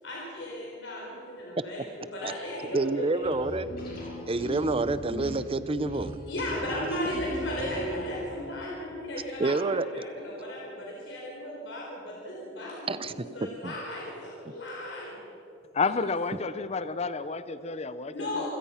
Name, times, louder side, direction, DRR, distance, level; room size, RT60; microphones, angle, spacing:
voice 1, 0.0-3.3 5.9-15.2 18.1-18.5, left 1 dB, 70° left, -4 dB, 4.4 m, -36 dB
voice 2, 2.7-3.7 4.3-6.2 9.4-10.0 12.9-13.1 13.6-13.7, right 3 dB, 30° right, 15 dB, 0.7 m, -28 dB
sound 1, 3.2-8.4, equal, 55° left, 5.6 m, -40 dB
voice 3, 15.7-18.5, left 4 dB, 35° left, 13 dB, 0.7 m, -30 dB
28.0 x 16.0 x 5.7 m, 2.8 s
head